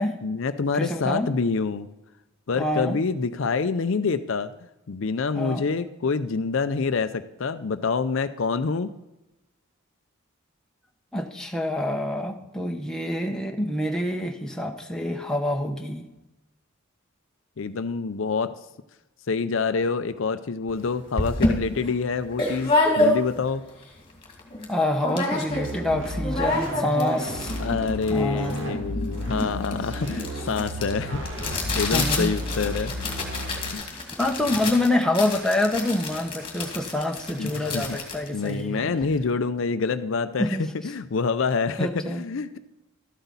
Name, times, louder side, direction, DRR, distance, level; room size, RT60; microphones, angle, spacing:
voice 1, 0.2-1.9 2.5-4.5 4.9-8.9 17.6-18.5 19.3-23.6 27.6-31.2 31.5-33.2 33.7-33.8 37.4-38.0 38.3-42.6, left 4 dB, 65° left, 11 dB, 0.5 m, -27 dB
voice 2, 0.7-1.3 2.5-3.0 5.4-5.6 11.1-16.1 24.7-27.5 28.1-28.7 31.9-32.3 34.2-38.9 40.4-40.6 41.8-42.2, left 1 dB, 5° left, 2 dB, 1.0 m, -26 dB
sound 1, 20.7-20.8 21.2-23.6 24.0-24.1 24.2-24.7 25.0-25.8 26.1-39.2, left 2 dB, 25° left, 2.1 m, -28 dB
sound 2, 25.5-33.7, equal, 60° right, 2.2 m, -33 dB
13.0 x 8.0 x 4.0 m, 1.0 s
head